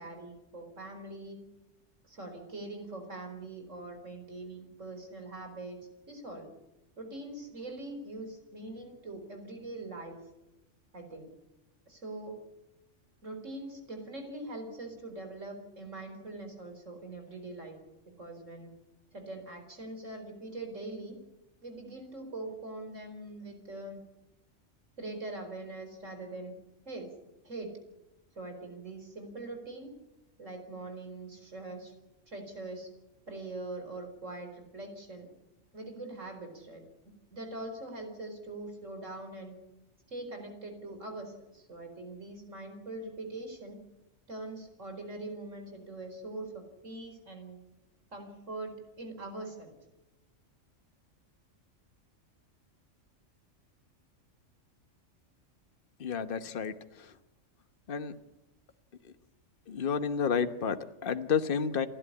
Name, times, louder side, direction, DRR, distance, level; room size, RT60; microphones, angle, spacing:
voice 1, 0.0-1.4 2.0-5.8 6.1-6.5 7.0-10.2 10.9-11.3 11.9-12.4 13.2-17.8 18.2-18.7 19.1-21.1 21.6-24.0 25.0-26.5 26.9-27.1 27.4-27.8 28.3-29.9 30.4-31.9 32.3-32.9 33.3-35.3 35.7-36.8 37.3-39.6 40.1-43.8 44.3-47.6 48.1-49.7, right 2 dB, 75° right, 5 dB, 4.7 m, -42 dB
voice 2, 56.0-56.7 57.9-58.1 59.7-61.9, left 6 dB, 45° left, 10 dB, 1.2 m, -30 dB
29.5 x 11.5 x 9.8 m, 0.96 s
omnidirectional pair, 1.3 m